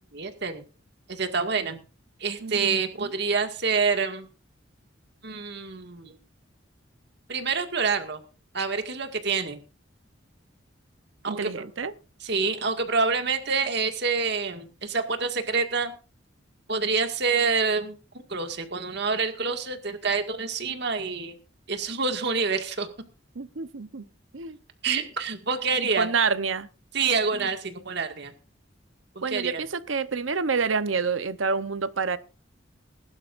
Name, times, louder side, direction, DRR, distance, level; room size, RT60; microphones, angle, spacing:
voice 1, 0.1-0.6 1.1-1.8 2.2-4.3 5.2-6.1 7.3-8.2 8.5-9.6 11.2-11.7 12.2-15.9 16.7-18.0 18.3-21.4 21.7-22.9 24.8-26.1 26.9-28.3 29.3-29.6, right 4 dB, 60° right, 2.0 m, -27 dB
voice 2, 2.4-3.1 11.3-11.9 23.3-24.1 24.3-24.6 25.8-26.7 27.3-27.5 29.2-32.2, right 5 dB, 85° right, 0.9 m, -28 dB
21.0 x 11.5 x 2.6 m
head